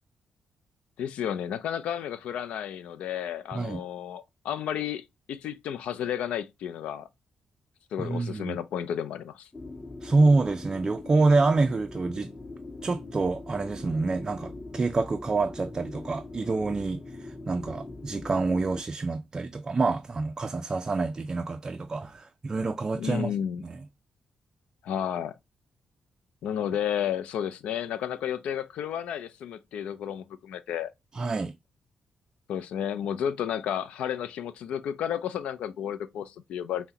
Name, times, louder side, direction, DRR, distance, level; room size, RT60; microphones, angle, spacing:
voice 1, 1.0-5.0 5.3-7.1 7.9-9.5 23.0-23.6 24.8-25.3 26.4-30.9 32.5-36.9, left 9 dB, 85° left, 0.4 m, -32 dB
voice 2, 8.0-8.6 10.0-12.3 12.8-23.3 23.6-23.8 31.1-31.5, right 3 dB, 30° right, 0.3 m, -27 dB
sound 1, 9.5-18.8, left 2 dB, 35° left, 1.3 m, -42 dB
5.5 x 2.1 x 2.8 m
cardioid pair, 80°, 2 cm